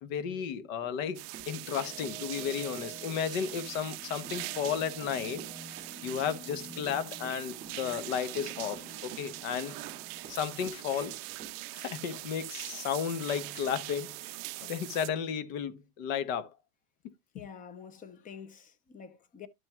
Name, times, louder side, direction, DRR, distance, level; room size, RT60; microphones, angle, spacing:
voice 1, 0.0-9.8 10.3-11.2 11.7-16.5 17.0-17.1, left 8 dB, 60° left, 1.2 m, -34 dB
Run, 0.8-2.5 2.8-11.6, right 7 dB, 20° right, 2.2 m, -51 dB
sound 1, 1.1-15.1, right 22 dB, 45° right, 0.4 m, -42 dB
sound 2, 1.2-12.2, equal, 5° right, 2.3 m, -50 dB
voice 2, 17.3-19.5, left 7 dB, 20° left, 0.6 m, -48 dB
12.5 x 6.0 x 2.3 m
supercardioid pair, 140°, 45 cm